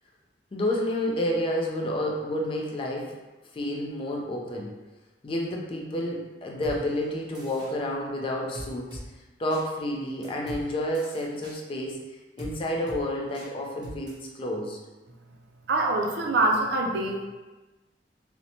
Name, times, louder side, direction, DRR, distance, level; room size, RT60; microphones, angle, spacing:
voice 1, 0.5-3.1 3.5-4.7 5.2-9.0 9.4-12.0 12.4-14.8, left 1 dB, 30° left, -1 dB, 0.3 m, -30 dB
sound 1, 6.6-6.8 7.3-7.7 8.5-9.0 9.5-9.6 10.2-10.6 10.9-11.6 12.4-12.5 12.9-13.0 13.3-13.5 13.8-14.1, equal, 25° right, 0.7 m, -40 dB
voice 2, 15.7-17.3, right 2 dB, 65° right, 1 dB, 0.4 m, -24 dB
2.8 x 2.1 x 2.7 m, 1.2 s
head